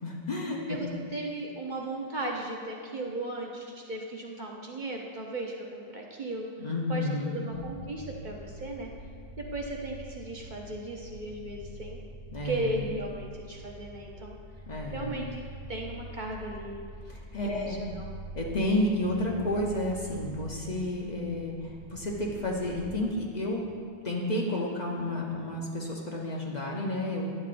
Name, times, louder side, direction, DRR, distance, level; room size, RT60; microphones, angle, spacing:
voice 1, 0.0-0.8 6.6-7.5 12.3-12.8 14.7-15.2 17.1-17.8 18.3-23.7 24.0-27.3, left 1 dB, 40° left, -2 dB, 0.8 m, -31 dB
voice 2, 0.7-6.5 6.9-8.9 9.4-12.0 12.4-14.4 14.9-15.4 15.7-16.8 17.4-18.2, right 2 dB, 50° right, -1 dB, 0.7 m, -36 dB
sound 1, 7.5-23.1, right 1 dB, 30° right, 1.2 m, -45 dB
10.0 x 7.5 x 2.5 m, 2.2 s
omnidirectional pair, 1.2 m